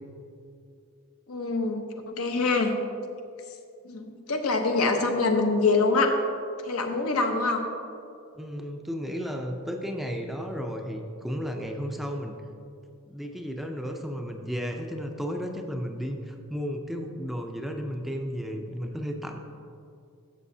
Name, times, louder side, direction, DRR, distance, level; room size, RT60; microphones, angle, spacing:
voice 1, 1.3-2.7 3.8-6.2 6.7-7.7, left 3 dB, 75° left, 4 dB, 0.8 m, -25 dB
voice 2, 8.4-12.4 13.1-19.4, equal, ahead, 2 dB, 0.4 m, -33 dB
12.5 x 6.7 x 2.7 m, 2.5 s
head